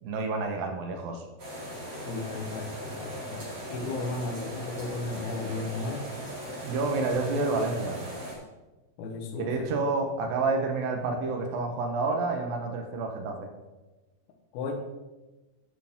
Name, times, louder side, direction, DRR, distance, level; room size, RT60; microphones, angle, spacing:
voice 1, 0.0-1.2 6.6-8.0 9.4-13.5, right 3 dB, 70° right, 4 dB, 2.5 m, -29 dB
sound 1, 1.4-8.3, equal, 30° right, 4.4 m, -39 dB
voice 2, 2.1-6.1 9.0-9.7 14.5-14.7, left 3 dB, 70° left, 1 dB, 2.8 m, -35 dB
11.5 x 9.0 x 3.7 m, 1.1 s
omnidirectional pair, 5.0 m